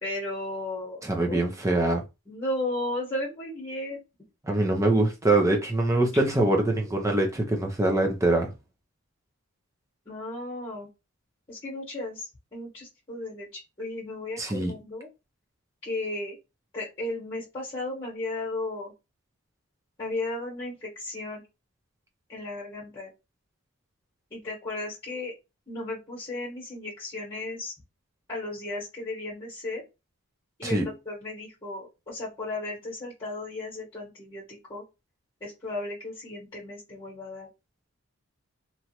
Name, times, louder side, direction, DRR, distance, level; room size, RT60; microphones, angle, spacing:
voice 1, 0.0-1.4 2.3-4.0 10.0-10.9 11.5-15.1 15.8-16.4 16.7-18.9 20.0-21.4 22.3-23.1 24.3-25.3 25.7-27.7 28.3-29.8 30.6-34.8 35.4-37.5, left 2 dB, 20° left, 1.1 m, -35 dB
voice 2, 1.0-2.0 4.4-8.5 14.4-14.7 30.6-30.9, right 2 dB, 15° right, 0.5 m, -24 dB
3.0 x 2.3 x 2.8 m
head